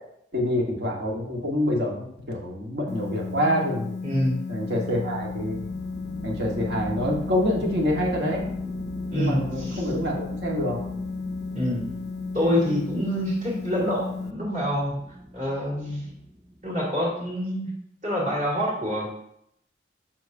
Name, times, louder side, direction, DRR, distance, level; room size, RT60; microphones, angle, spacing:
voice 1, 0.3-3.9 4.5-5.6 6.2-8.4 9.1-10.8, equal, 65° right, -1 dB, 1.5 m, -26 dB
sound 1, 2.9-14.3, left 4 dB, 60° left, 0.4 m, -34 dB
voice 2, 4.0-4.4 9.1-9.9 11.5-11.9 12.3-14.9 15.3-16.0 16.6-17.7 18.0-19.1, equal, 45° right, -6 dB, 2.6 m, -26 dB
sound 2, 4.9-17.0, equal, 15° right, 1.7 m, -40 dB
7.5 x 5.8 x 2.7 m, 0.74 s
head